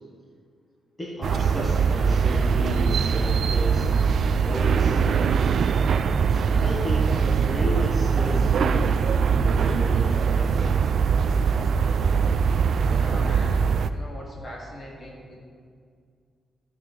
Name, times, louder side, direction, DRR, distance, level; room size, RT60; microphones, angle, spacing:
voice 1, 1.0-3.9 4.4-5.3 6.3-10.7, equal, 15° left, -5 dB, 1.1 m, -33 dB
sound 1, 1.2-13.9, right 6 dB, 55° right, 0.3 m, -22 dB
voice 2, 12.7-15.4, equal, 35° left, -3 dB, 2.3 m, -41 dB
13.5 x 5.8 x 4.7 m, 2.1 s
wide cardioid pair, 165°, 0 cm